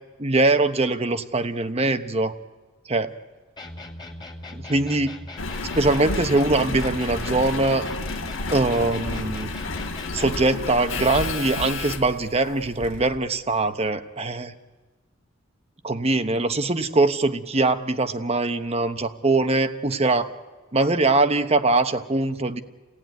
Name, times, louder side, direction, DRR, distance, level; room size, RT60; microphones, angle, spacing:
voice 1, 0.2-2.3 2.9-3.1 4.5-5.1 5.8-7.9 8.5-9.5 10.1-14.5 15.8-20.3 20.7-22.6, right 2 dB, 30° right, 9 dB, 1.1 m, -22 dB
sound 1, 3.6-10.5, left 1 dB, 25° left, 2.3 m, -39 dB
Engine, 5.4-13.2 13.8-13.9, left 3 dB, 85° left, 1.6 m, -31 dB
30.0 x 16.5 x 9.3 m, 1.3 s
head